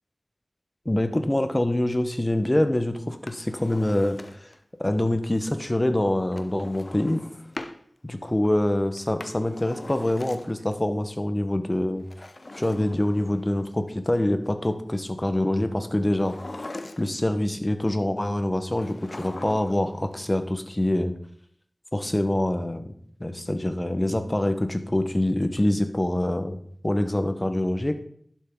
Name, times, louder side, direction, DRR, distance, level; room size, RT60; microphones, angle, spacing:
voice 1, 0.8-4.5 4.8-7.2 8.0-12.0 12.5-16.4 17.0-21.1 21.9-22.9 23.2-26.6 26.8-27.9, left 1 dB, 25° left, 8 dB, 1.2 m, -25 dB
Drawer open or close, 3.1-4.6 6.3-7.8 9.0-10.7 12.0-13.6 16.1-17.3 18.8-19.9 20.1-20.2, left 2 dB, 60° left, 0.9 m, -41 dB
11.5 x 7.5 x 3.8 m, 0.63 s
wide cardioid pair, 55°, 0 cm